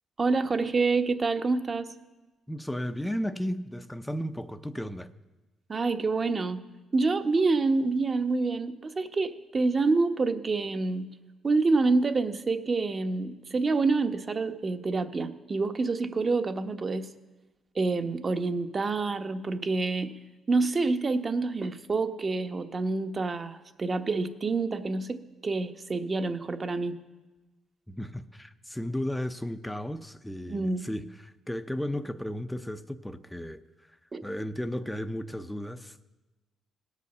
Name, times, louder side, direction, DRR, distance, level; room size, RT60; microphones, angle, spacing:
voice 1, 0.2-1.9 5.7-6.6 6.9-11.1 11.4-17.1 17.7-20.1 20.5-27.0 30.5-30.9 34.1-34.2, right 3 dB, 35° right, 8 dB, 1.0 m, -27 dB
voice 2, 2.5-5.1 27.9-33.6 34.2-36.0, equal, 5° left, 8 dB, 0.6 m, -34 dB
17.5 x 8.3 x 6.9 m, 1.1 s
cardioid pair, 80°, 0 cm